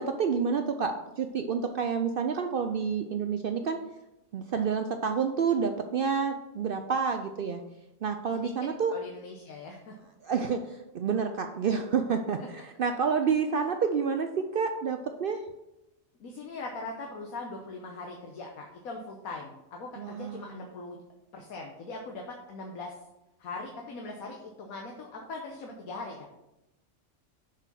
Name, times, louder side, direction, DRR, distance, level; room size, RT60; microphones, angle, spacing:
voice 1, 0.0-3.8 4.3-7.6 8.0-8.9 10.2-15.4 20.0-20.6, right 6 dB, 70° right, 6 dB, 0.5 m, -29 dB
voice 2, 8.9-10.0 12.4-12.5 13.5-13.7 16.2-21.0 21.3-23.0 23.4-26.3, left 3 dB, 90° left, 1 dB, 1.4 m, -41 dB
6.5 x 4.9 x 5.8 m, 0.94 s
omnidirectional pair, 1.5 m